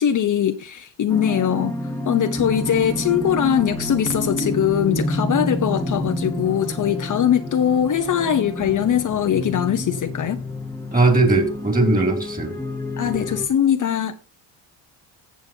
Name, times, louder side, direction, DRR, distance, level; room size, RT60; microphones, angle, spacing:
voice 1, 0.0-1.7 2.0-10.4 13.0-14.1, left 9 dB, 45° left, 0.8 m, -21 dB
sound 1, 1.1-13.5, left 1 dB, 5° left, 1.6 m, -29 dB
voice 2, 10.9-12.5, right 2 dB, 20° right, 2.8 m, -18 dB
15.0 x 7.6 x 2.8 m
cardioid pair, 100°, 44 cm